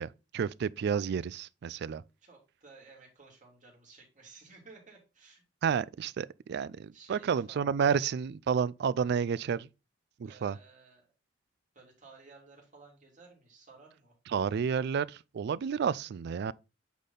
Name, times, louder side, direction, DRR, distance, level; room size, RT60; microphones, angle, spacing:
voice 1, 0.0-2.0 5.6-9.7 10.2-10.6 14.3-16.5, right 6 dB, 60° right, 0.3 m, -30 dB
voice 2, 2.2-5.4 6.9-7.9 10.2-11.1 11.7-14.1, right 4 dB, 40° right, 2.8 m, -55 dB
8.3 x 4.2 x 3.8 m
head